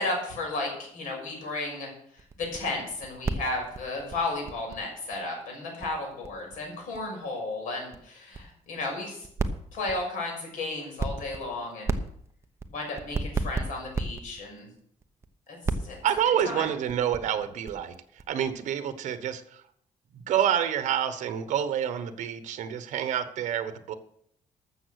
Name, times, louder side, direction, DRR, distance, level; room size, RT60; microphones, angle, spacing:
voice 1, 0.0-9.3 9.7-12.0 12.7-14.7 15.5-16.0 16.4-16.7, left 2 dB, 85° left, 0 dB, 6.1 m, -34 dB
sound 1, 2.2-5.1 5.4-5.5 5.7-7.0 7.2-7.3 7.7-8.0 8.3-8.4 8.6-8.9 9.2-10.1 10.9-11.5 11.8-14.6 15.0-15.3 15.6-18.5, right 3 dB, 20° right, 0.8 m, -31 dB
voice 2, 16.0-17.9 18.3-19.6 20.1-23.9, right 9 dB, 65° right, 11 dB, 1.1 m, -28 dB
13.0 x 7.3 x 6.4 m, 0.69 s
cardioid pair, 175°, 13 cm